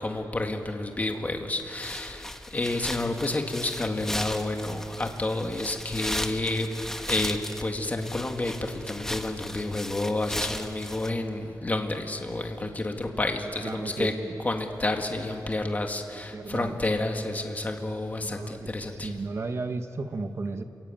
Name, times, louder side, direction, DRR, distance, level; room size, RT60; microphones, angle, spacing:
voice 1, 0.0-6.7 7.1-14.1 14.4-19.1, left 2 dB, 20° left, 4 dB, 1.9 m, -30 dB
sound 1, 1.7-11.1, left 1 dB, 5° left, 1.2 m, -36 dB
voice 2, 13.6-14.4 16.3-16.7 18.2-18.7 19.0-20.6, right 3 dB, 40° right, 7 dB, 1.4 m, -34 dB
28.5 x 23.0 x 9.0 m, 2.9 s
wide cardioid pair, 160°, 7 cm